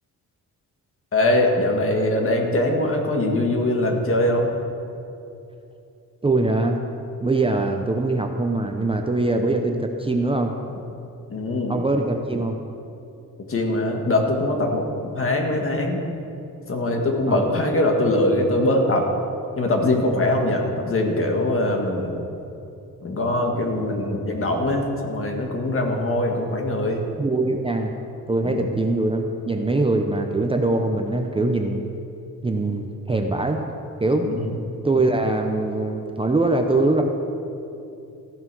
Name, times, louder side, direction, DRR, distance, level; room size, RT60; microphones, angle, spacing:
voice 1, 1.1-4.5 11.3-11.8 13.5-16.0 16.7-19.1 19.6-22.1 23.0-27.0 28.4-28.7 34.2-34.5, left 1 dB, 40° left, 2 dB, 1.7 m, -22 dB
voice 2, 6.2-6.8 7.2-10.5 11.7-12.6 17.3-17.5 27.2-27.9 28.3-31.8 32.4-33.6 34.0-34.3 34.8-37.0, right 2 dB, 15° right, 3 dB, 0.6 m, -22 dB
14.5 x 7.8 x 6.1 m, 2.7 s
wide cardioid pair, 125°, 34 cm